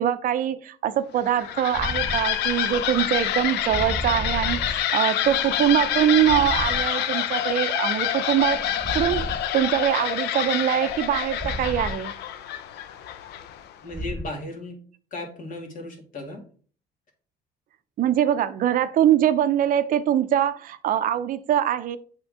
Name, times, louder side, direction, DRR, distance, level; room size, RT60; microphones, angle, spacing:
voice 1, 0.0-8.6 8.9-12.1 18.0-22.0, right 10 dB, 55° right, 0.5 m, -23 dB
sound 1, 1.2-13.7, left 10 dB, 80° left, 0.6 m, -27 dB
sound 2, 1.7-7.9 8.2-10.3 10.9-13.4 13.9-14.2, equal, 10° left, 2.1 m, -35 dB
voice 2, 13.8-14.8 15.1-16.4, left 2 dB, 55° left, 2.2 m, -35 dB
7.9 x 3.6 x 3.6 m
cardioid pair, 110°, 17 cm